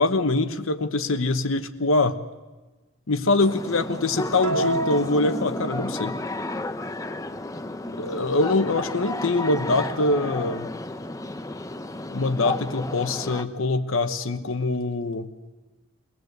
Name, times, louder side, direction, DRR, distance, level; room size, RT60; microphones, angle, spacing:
voice 1, 0.0-2.2 3.1-6.2 8.0-10.7 12.1-15.3, left 2 dB, 75° left, 9 dB, 1.0 m, -24 dB
sound 1, 3.4-13.4, left 2 dB, 15° left, 0.7 m, -32 dB
sound 2, 4.4-6.2, right 3 dB, 90° right, 1.3 m, -30 dB
22.5 x 17.5 x 8.0 m, 1.2 s
head